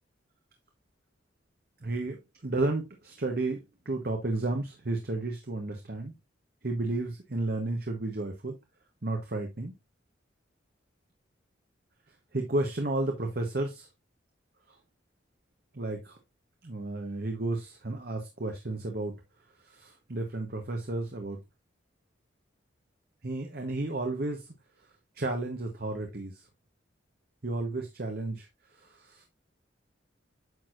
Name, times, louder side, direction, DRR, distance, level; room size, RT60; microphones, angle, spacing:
voice 1, 1.8-6.1 6.6-8.6 9.0-9.7 12.3-13.9 15.7-16.2 16.6-19.1 19.6-21.4 23.2-24.5 25.2-26.4 27.4-28.5 28.8-29.3, right 2 dB, 50° right, 1.1 m, -32 dB
9.3 x 6.2 x 2.5 m
head